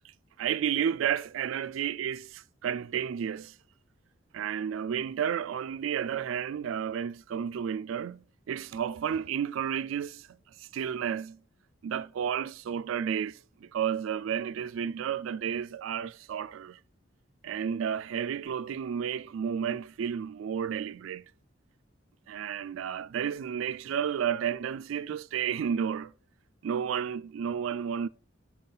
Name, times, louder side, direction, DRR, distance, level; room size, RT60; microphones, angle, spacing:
voice 1, 0.4-3.6 4.3-11.4 11.8-16.8 17.4-21.2 22.3-26.1 26.6-28.1, right 8 dB, 85° right, 0.3 m, -32 dB
5.4 x 4.8 x 5.5 m
head